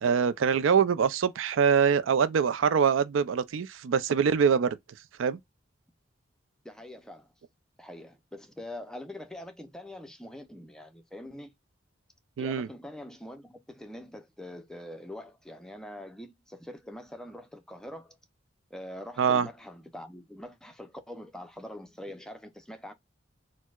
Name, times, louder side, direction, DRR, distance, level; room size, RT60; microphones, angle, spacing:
voice 1, 0.0-4.8 5.2-5.4 12.4-12.7 19.2-19.5, right 7 dB, 90° right, 0.4 m, -24 dB
voice 2, 6.6-7.3 7.8-11.5 12.4-18.2 18.7-22.9, left 1 dB, 5° left, 0.4 m, -44 dB
4.4 x 2.0 x 2.3 m
head